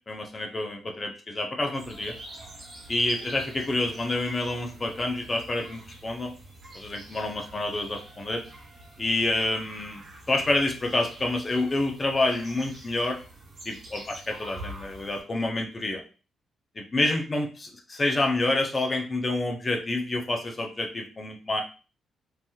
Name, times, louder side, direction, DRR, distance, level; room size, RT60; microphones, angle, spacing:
voice 1, 0.1-2.1 2.9-6.3 6.7-8.4 9.0-13.2 13.7-16.0 16.8-21.6, left 2 dB, 35° left, 2 dB, 0.7 m, -28 dB
sound 1, 1.8-15.2, right 1 dB, 60° right, 1.5 m, -46 dB
3.2 x 2.7 x 2.3 m, 0.35 s
supercardioid pair, 50°, 0 cm